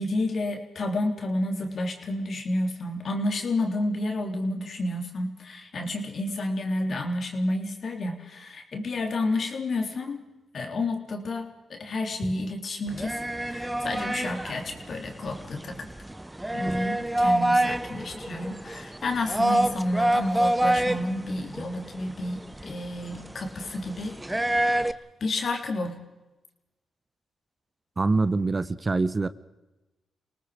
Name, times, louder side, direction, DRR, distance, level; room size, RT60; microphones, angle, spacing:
voice 1, 0.0-10.2 10.5-13.2 13.5-15.9 16.5-26.0, left 2 dB, 60° left, 3.6 m, -30 dB
sound 1, 12.9-24.9, right 1 dB, 15° right, 0.9 m, -27 dB
voice 2, 28.0-29.3, right 3 dB, 35° right, 1.1 m, -24 dB
28.0 x 19.0 x 5.2 m
supercardioid pair, 50°, 0 cm